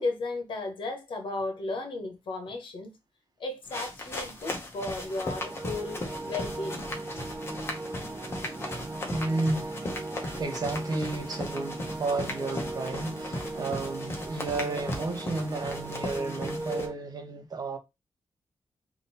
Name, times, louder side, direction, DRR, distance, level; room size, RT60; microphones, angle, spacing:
voice 1, 0.0-2.9 3.4-6.9, left 2 dB, 65° left, 1.1 m, -34 dB
sound 1, 3.7-16.9, left 1 dB, 30° left, 1.1 m, -37 dB
sound 2, 5.0-16.9, right 2 dB, 30° right, 0.5 m, -38 dB
voice 2, 9.1-9.8 10.4-17.8, right 3 dB, 45° right, 1.0 m, -32 dB
3.7 x 2.7 x 4.1 m
wide cardioid pair, 160°, 9 cm